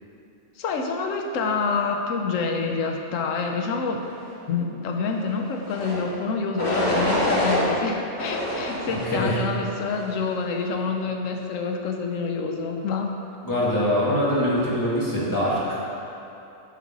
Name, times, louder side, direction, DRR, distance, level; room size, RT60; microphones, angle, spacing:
voice 1, 0.6-4.1 4.5-13.1, left 4 dB, 90° left, 3 dB, 1.1 m, -27 dB
sound 1, 5.6-6.0 6.6-7.6 8.2-9.2 9.8-10.2, left 1 dB, 35° left, 1.8 m, -26 dB
voice 2, 8.9-9.4 13.4-15.8, equal, 15° left, -8 dB, 2.0 m, -23 dB
10.0 x 6.6 x 3.8 m, 2.8 s
omnidirectional pair, 1.3 m